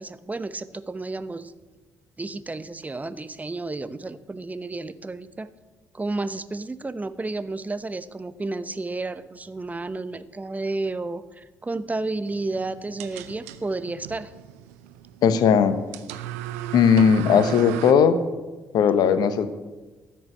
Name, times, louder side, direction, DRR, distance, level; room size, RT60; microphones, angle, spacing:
voice 1, 0.0-1.5 2.2-5.5 5.9-14.3, right 2 dB, 20° right, 13 dB, 0.9 m, -31 dB
sound 1, 12.3-17.9, right 12 dB, 80° right, 0.6 m, -36 dB
voice 2, 15.2-15.7 16.7-18.2 18.7-19.5, left 7 dB, 60° left, 12 dB, 1.0 m, -18 dB
13.5 x 6.7 x 9.0 m, 1.2 s
hypercardioid pair, 45°, 8 cm